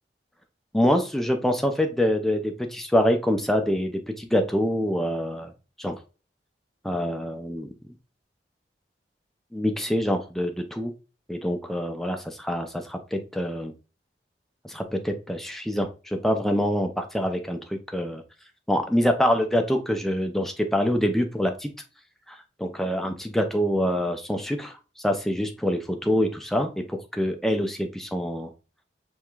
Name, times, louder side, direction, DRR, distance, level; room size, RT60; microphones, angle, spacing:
voice 1, 0.7-5.5 5.8-6.0 6.8-7.7 9.5-10.9 11.3-13.7 14.6-18.2 18.7-21.7 22.6-24.8 25.0-28.5, equal, ahead, 5 dB, 0.5 m, -25 dB
4.7 x 3.5 x 2.3 m, 0.34 s
head